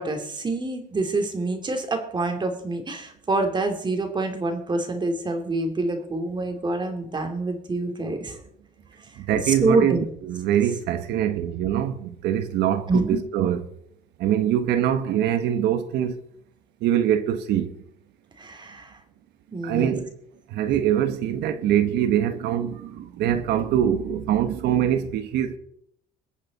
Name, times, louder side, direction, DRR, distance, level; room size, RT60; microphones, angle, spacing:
voice 1, 0.0-8.4 9.4-10.0 12.9-13.2 18.4-18.9 19.5-19.9, right 2 dB, 25° right, 2.6 m, -26 dB
voice 2, 9.3-13.6 14.2-16.2 16.8-17.7 19.6-20.1 20.5-25.6, right 10 dB, 80° right, 1.2 m, -23 dB
22.5 x 8.2 x 4.1 m
cardioid pair, 110°, 17 cm